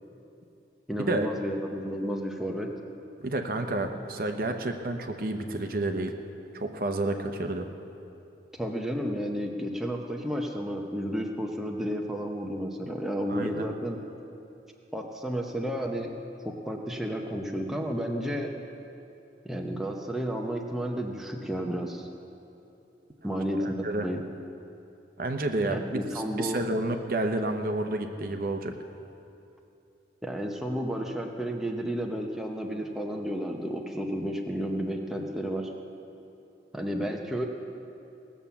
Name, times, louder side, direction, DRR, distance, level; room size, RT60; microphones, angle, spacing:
voice 1, 0.9-2.7 8.5-14.0 14.9-16.1 16.6-18.5 19.4-22.1 23.2-24.2 25.7-26.6 30.2-35.7 36.7-37.5, equal, ahead, 1 dB, 0.8 m, -32 dB
voice 2, 3.2-6.1 6.5-7.7 13.3-13.6 23.6-24.1 25.2-26.0 26.4-28.7, right 2 dB, 50° right, 5 dB, 0.8 m, -30 dB
18.5 x 7.3 x 7.0 m, 2.8 s
head